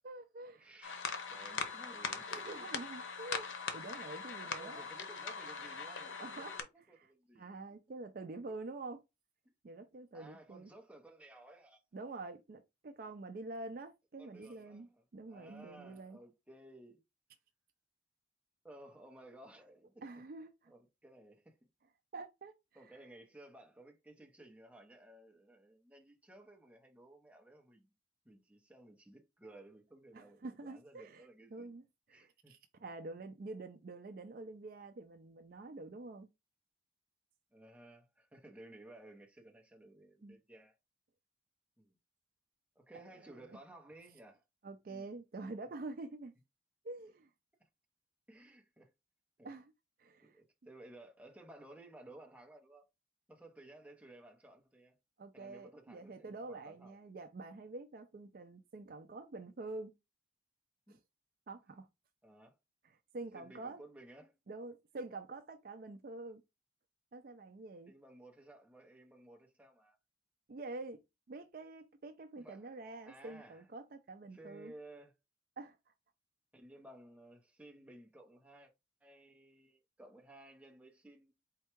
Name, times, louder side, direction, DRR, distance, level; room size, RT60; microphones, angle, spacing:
voice 1, 0.0-0.7 2.3-4.8 6.2-6.6 7.4-9.0 9.6-10.7 11.9-14.9 15.1-16.2 20.0-20.7 22.1-22.5 30.1-31.8 32.1-36.3 40.2-40.4 42.9-43.6 44.6-46.3 46.8-47.3 49.4-49.7 50.0-50.4 55.2-59.9 60.9-61.0 61.5-61.9 62.8-63.8 64.5-66.4 67.1-67.9 70.5-71.0 71.3-74.7 75.6-75.8, right 2 dB, 50° right, 0.4 m, -47 dB
voice 2, 0.5-2.7 4.5-7.6 9.4-9.5 10.1-11.8 14.2-15.0 15.3-17.0 18.6-20.0 20.7-21.7 22.7-27.9 28.2-31.7 32.1-32.5 37.5-40.8 41.8-42.0 42.8-44.4 44.9-45.2 48.3-48.9 49.4-49.5 50.2-52.8 53.3-55.0 55.3-57.0 60.9-61.0 62.2-62.6 63.3-64.3 67.9-70.0 72.4-72.8 73.0-73.7 74.3-75.1 76.5-78.7 79.0-81.3, right 1 dB, 5° right, 0.8 m, -56 dB
sound 1, 0.8-6.6, left 5 dB, 85° left, 0.7 m, -41 dB
4.4 x 2.3 x 4.4 m
head